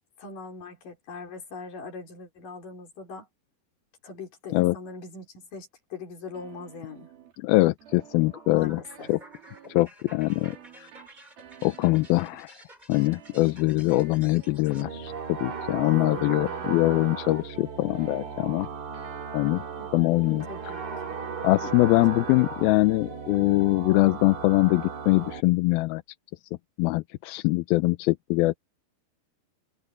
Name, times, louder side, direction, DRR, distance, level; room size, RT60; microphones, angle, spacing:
voice 1, 0.2-3.3 4.0-7.1 8.5-9.1 15.8-16.7 19.8-19.9 20.4-20.8 21.1-21.2 21.7-21.9, left 4 dB, 60° left, 6.0 m, -41 dB
sound 1, 6.3-7.4 7.8-8.6 8.9-12.5 12.9-17.6 17.9-19.9, right 9 dB, 75° right, 4.4 m, -51 dB
voice 2, 7.4-8.8 9.1-9.2 9.7-10.9 11.6-12.6 12.9-18.7 19.3-19.6 19.9-20.5 21.4-26.0 26.8-28.6, left 20 dB, 85° left, 2.5 m, -23 dB
sound 2, 7.9-14.9, right 1 dB, 10° right, 4.6 m, -52 dB
sound 3, 14.7-25.4, right 5 dB, 55° right, 3.9 m, -36 dB
omnidirectional pair, 4.2 m